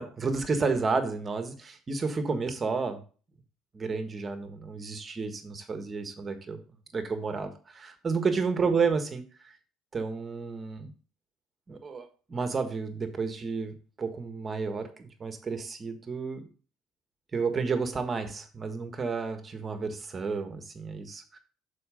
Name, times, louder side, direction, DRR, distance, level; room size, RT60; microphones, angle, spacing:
voice 1, 0.0-3.0 3.7-6.6 6.9-9.5 9.9-10.9 11.7-16.5 17.3-21.4, right 4 dB, 35° right, 7 dB, 1.5 m, -31 dB
7.0 x 4.8 x 4.9 m, 0.38 s
supercardioid pair, 70°, 0 cm